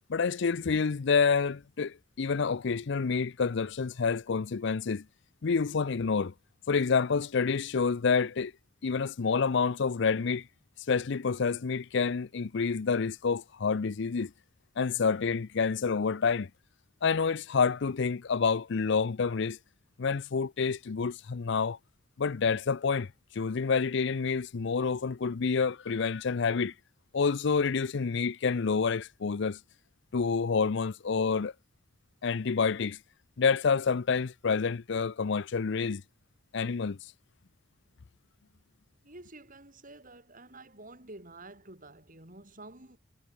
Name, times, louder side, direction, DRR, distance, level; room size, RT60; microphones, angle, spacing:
voice 1, 0.1-5.0 5.4-6.3 6.7-8.5 8.8-10.5 10.9-14.3 14.8-16.5 17.0-19.6 20.0-21.8 22.2-23.1 23.4-26.7 27.1-29.6 30.1-31.5 32.2-33.0 33.4-36.0 36.5-37.0, left 5 dB, 60° left, 0.5 m, -28 dB
voice 2, 39.0-43.0, right 2 dB, 40° right, 7.4 m, -49 dB
head